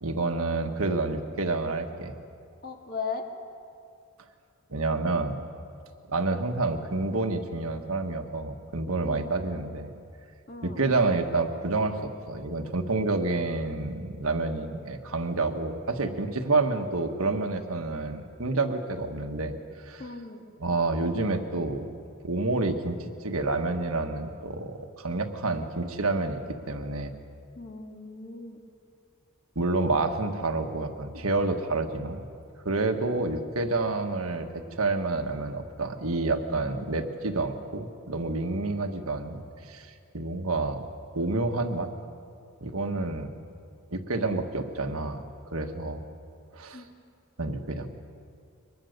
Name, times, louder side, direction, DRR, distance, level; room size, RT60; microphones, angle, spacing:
voice 1, 0.0-2.2 4.7-5.4 6.1-9.9 10.6-20.0 20.6-21.9 22.2-26.4 26.7-27.1 29.5-32.3 32.6-40.8 41.1-41.9 42.6-43.3 43.9-45.2 45.5-46.0 46.5-46.8 47.4-48.0, right 3 dB, 75° right, 5 dB, 1.5 m, -29 dB
voice 2, 2.6-3.3 9.0-9.4 10.5-10.8 20.0-20.4 27.5-28.6 46.7-46.9, left 4 dB, 40° left, 3 dB, 1.9 m, -37 dB
23.5 x 20.5 x 6.7 m, 2.3 s
head